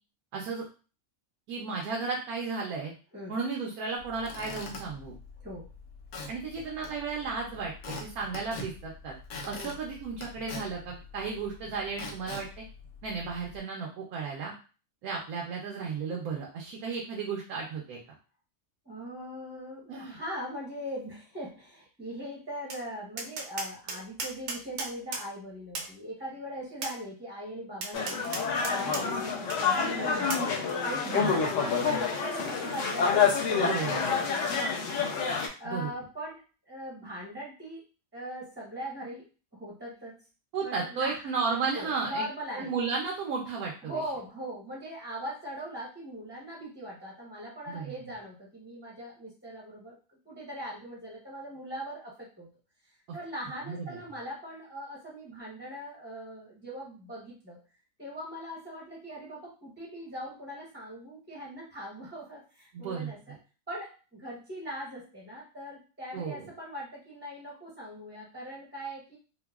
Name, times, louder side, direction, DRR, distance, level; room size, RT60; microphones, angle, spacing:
voice 1, 0.3-0.6 1.5-2.9 3.3-5.1 6.3-9.1 9.4-12.5 13.0-14.5 15.0-18.0 19.9-20.2 31.1-31.5 33.5-34.2 35.6-35.9 40.5-42.2 42.5-44.0 47.7-48.1 53.7-54.0 62.7-63.1 66.1-66.5, right 5 dB, 90° right, -2 dB, 1.1 m, -34 dB
Squeak / Wood, 4.0-13.6, left 3 dB, 85° left, 1.2 m, -44 dB
voice 2, 18.8-28.2 28.5-30.4 30.8-35.0 35.6-37.8 38.1-39.3 39.5-40.2 40.6-41.2 41.7-42.7 43.8-50.0 50.2-52.5 53.1-57.6 58.0-63.3 63.7-69.2, equal, 10° right, -5 dB, 0.5 m, -40 dB
Tap, 22.7-22.8 23.2-25.3 25.7-25.9 26.8-27.0 27.8-29.0 29.5-29.6 30.3-30.5, right 3 dB, 65° right, 0.7 m, -35 dB
sound 1, 27.9-35.5, left 6 dB, 65° left, 0.9 m, -28 dB
3.8 x 2.0 x 2.3 m, 0.35 s
omnidirectional pair, 1.5 m